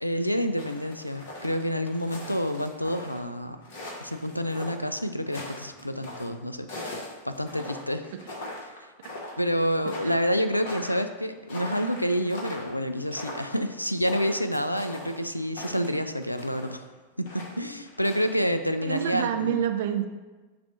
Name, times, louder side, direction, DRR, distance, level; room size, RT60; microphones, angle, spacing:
voice 1, 0.0-3.6 4.0-8.1 8.7-8.8 9.4-16.8 17.2-19.5, equal, 90° left, 9 dB, 0.4 m, -28 dB
sound 1, 0.6-3.2 3.6-6.3 6.7-8.8 9.0-9.5 9.8-16.7 17.3-18.3 18.7-19.2, left 1 dB, 50° left, 1.4 m, -40 dB
voice 2, 18.8-20.1, right 9 dB, 55° right, 6 dB, 0.5 m, -27 dB
7.2 x 2.6 x 5.8 m, 1.2 s
figure-of-eight pair, 90°, 0 cm